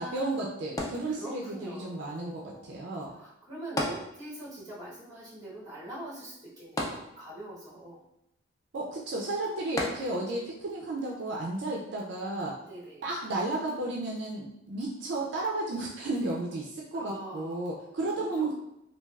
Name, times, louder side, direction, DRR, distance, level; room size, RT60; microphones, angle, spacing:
voice 1, 0.0-3.2 8.7-12.6 13.0-18.5, right 2 dB, 60° right, -2 dB, 0.4 m, -33 dB
sound 1, 0.8-1.7 3.8-4.6 4.9-5.0 6.8-7.6 9.8-10.5 11.2-11.3, left 1 dB, 20° left, 0.3 m, -34 dB
voice 2, 1.0-2.8 3.1-8.0 8.9-9.0 12.7-13.0 16.9-17.7 18.2-18.5, right 1 dB, 20° right, -8 dB, 1.0 m, -43 dB
3.2 x 2.3 x 2.3 m, 0.80 s
head